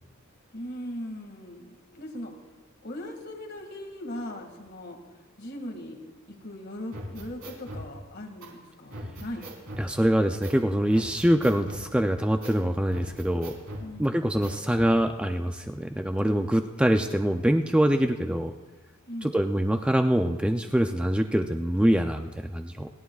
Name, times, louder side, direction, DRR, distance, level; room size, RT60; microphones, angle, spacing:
voice 1, 0.5-2.3 2.8-5.0 5.4-6.0 6.3-9.5 13.8-14.2 19.1-19.5, left 1 dB, 50° left, 2 dB, 2.1 m, -39 dB
sound 1, 6.9-7.9 8.4-8.5 8.9-9.9 10.4-10.6 10.9-11.9 12.4-12.6 12.9-13.9 14.4-14.9, equal, 90° right, 4.0 m, -39 dB
voice 2, 9.8-13.5 14.0-18.5 19.2-22.9, right 1 dB, 5° right, 5 dB, 0.4 m, -24 dB
28.5 x 11.5 x 2.4 m, 1.2 s
head